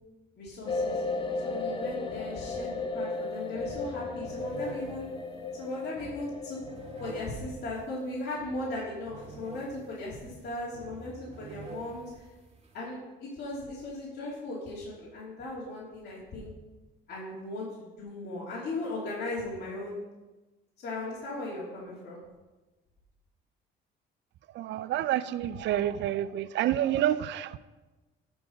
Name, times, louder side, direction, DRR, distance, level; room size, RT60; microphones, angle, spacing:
voice 1, 0.4-1.0 1.4-5.1 5.6-6.6 7.0-12.2 12.7-16.5 17.1-20.0 20.8-22.2, left 2 dB, 55° left, -7 dB, 2.8 m, -37 dB
sound 1, 0.7-7.6, left 3 dB, 25° left, 0.9 m, -35 dB
sound 2, 3.1-3.3 3.5-12.8, right 2 dB, 30° right, 1.9 m, -48 dB
voice 2, 24.6-27.6, right 12 dB, 65° right, 15 dB, 0.4 m, -28 dB
12.0 x 4.8 x 5.1 m, 1.2 s
cardioid pair, 90°, 20 cm